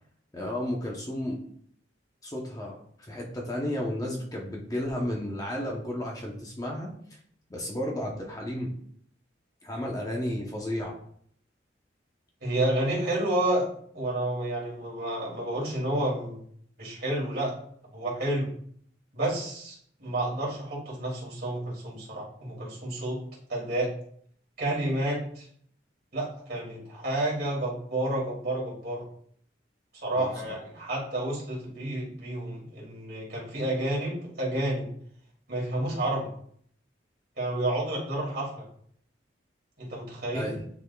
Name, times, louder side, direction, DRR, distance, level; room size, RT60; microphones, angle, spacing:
voice 1, 0.3-1.4 2.2-6.9 7.5-8.7 9.6-11.0 30.1-30.3 40.3-40.6, left 1 dB, 20° left, -1 dB, 0.8 m, -33 dB
voice 2, 12.4-13.7 13.9-16.4 16.8-17.5 17.9-18.5 19.1-23.2 23.5-23.9 24.6-25.5 26.1-29.0 30.0-34.9 35.5-36.3 37.4-38.7 39.8-40.5, right 1 dB, 55° right, -4 dB, 2.5 m, -30 dB
9.9 x 4.1 x 2.3 m, 0.63 s
head